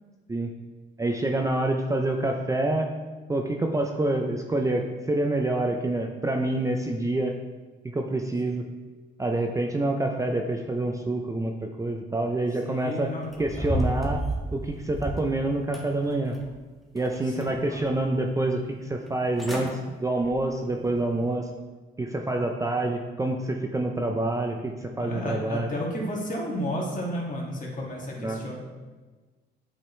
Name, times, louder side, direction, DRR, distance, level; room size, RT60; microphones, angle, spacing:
voice 1, 1.0-2.9 3.3-7.3 7.8-8.7 9.2-13.1 13.4-14.2 14.5-16.4 16.9-21.5 22.0-25.7 28.2-28.4, right 2 dB, 15° right, 3 dB, 0.6 m, -27 dB
voice 2, 12.6-13.3 13.6-13.9 17.2-17.9 24.9-28.6, equal, 40° left, -3 dB, 2.2 m, -32 dB
sound 1, 13.3-15.3 15.7-16.6 17.0-17.8 18.2-18.3 19.1-19.2 19.4-19.7 20.2-20.4 20.9-21.0, right 1 dB, ahead, 1.3 m, -32 dB
8.9 x 5.0 x 3.3 m, 1.3 s
cardioid pair, 90°, 20 cm